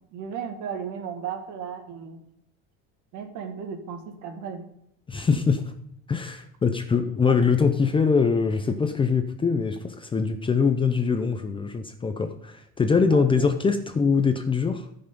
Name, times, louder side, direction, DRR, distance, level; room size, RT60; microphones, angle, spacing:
voice 1, 0.1-2.2 3.1-4.6 5.2-5.3 13.1-13.2, right 7 dB, 60° right, 5 dB, 2.0 m, -35 dB
voice 2, 5.1-5.6 6.1-14.9, left 5 dB, 15° left, 7 dB, 0.5 m, -23 dB
14.0 x 5.7 x 5.2 m, 0.75 s
cardioid pair, 155°, 33 cm